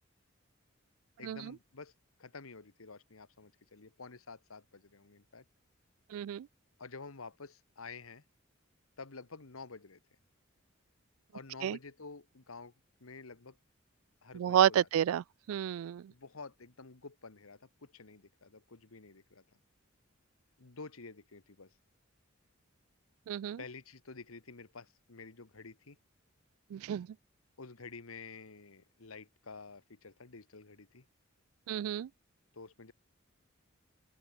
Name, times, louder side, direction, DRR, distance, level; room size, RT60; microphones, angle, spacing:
voice 1, 1.2-1.9 2.2-5.4 6.8-8.2 9.0-10.0 11.3-12.7 13.0-13.6 14.2-14.9 16.1-19.4 20.6-21.7 23.6-26.0 27.6-31.0 32.5-32.9, left 4 dB, 85° left, 1.5 m, -50 dB
voice 2, 6.1-6.5 11.6-11.8 14.3-15.2 15.5-16.0 23.3-23.6 26.7-27.1 31.7-32.1, right 10 dB, 85° right, 0.3 m, -30 dB
open air
head